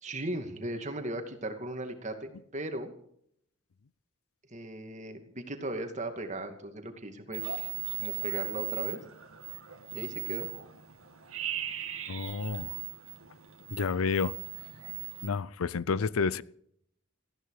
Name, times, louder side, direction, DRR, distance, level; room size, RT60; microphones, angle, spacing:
voice 1, 0.0-2.9 4.5-7.7 8.0-9.0 9.9-10.5, right 1 dB, 35° right, 2.5 m, -37 dB
sound 1, 7.3-15.3, right 12 dB, 80° right, 2.1 m, -38 dB
voice 2, 12.1-12.8 13.7-14.3 15.2-16.4, left 5 dB, 80° left, 0.6 m, -30 dB
19.0 x 15.0 x 5.0 m
head